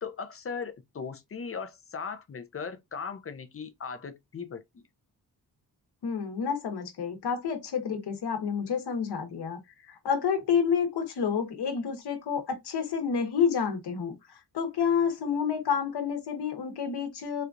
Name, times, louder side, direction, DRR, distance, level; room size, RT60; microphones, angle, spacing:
voice 1, 0.0-4.6, left 5 dB, 35° left, 0.5 m, -38 dB
voice 2, 6.0-9.6 9.9-17.5, left 6 dB, 80° left, 1.1 m, -29 dB
4.3 x 2.3 x 2.5 m
wide cardioid pair, 120°, 39 cm